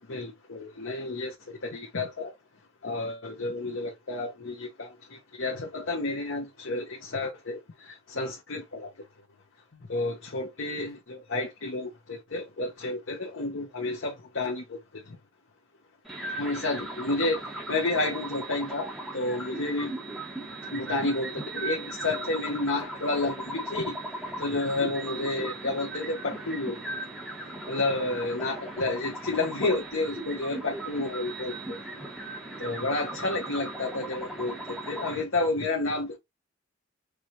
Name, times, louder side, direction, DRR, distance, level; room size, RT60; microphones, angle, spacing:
voice 1, 0.1-2.3 2.8-8.9 9.9-14.8 15.1-15.2 16.4-17.4 17.7-19.9 20.7-23.9 24.4-26.8 27.7-31.8 32.6-36.2, left 2 dB, 70° left, 0.9 m, -31 dB
sound 1, 16.0-35.2, right 2 dB, ahead, 1.2 m, -38 dB
4.8 x 2.6 x 2.9 m
head